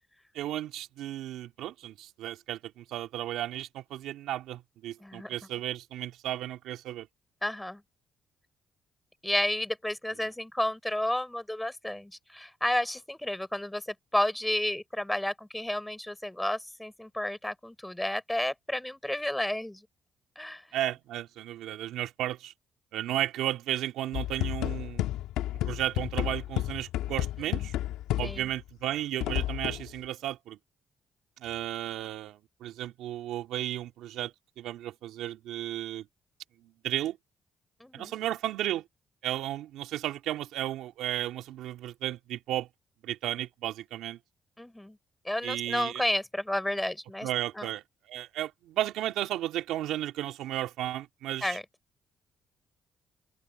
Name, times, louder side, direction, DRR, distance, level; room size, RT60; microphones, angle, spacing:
voice 1, 0.3-7.1 20.7-22.5 22.9-25.0 25.6-27.7 28.2-30.6 31.4-36.1 36.8-37.2 37.9-38.8 39.2-42.7 43.0-44.2 45.4-46.0 47.2-51.6, right 13 dB, 80° right, 2.5 m, -34 dB
voice 2, 7.4-7.8 9.2-19.8 20.4-20.6 28.2-28.5 37.8-38.1 44.6-45.0 45.2-47.3 47.6-47.7 51.4-51.6, left 1 dB, 10° left, 5.9 m, -31 dB
sound 1, 24.1-28.6 29.2-29.9, left 14 dB, 85° left, 1.8 m, -31 dB
open air
supercardioid pair, 65°, 0 cm